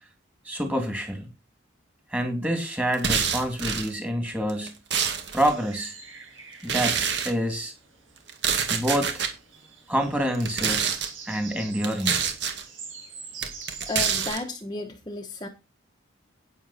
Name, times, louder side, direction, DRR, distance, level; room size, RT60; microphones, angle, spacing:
voice 1, 0.4-1.3 2.1-4.7 5.3-5.9 6.6-7.0 7.2-7.7 8.7-9.2 9.9-10.9 11.3-12.2, equal, 5° right, 2.6 m, -27 dB
sound 1, 2.9-3.9 4.5-5.5 6.6-7.3 8.3-9.3 10.3-11.1 11.8-12.6 13.4-14.4, right 7 dB, 55° right, 2.0 m, -26 dB
sound 2, 5.5-14.3, right 5 dB, 75° right, 5.7 m, -44 dB
voice 2, 13.8-15.5, left 3 dB, 20° left, 1.2 m, -33 dB
11.0 x 9.3 x 4.3 m
head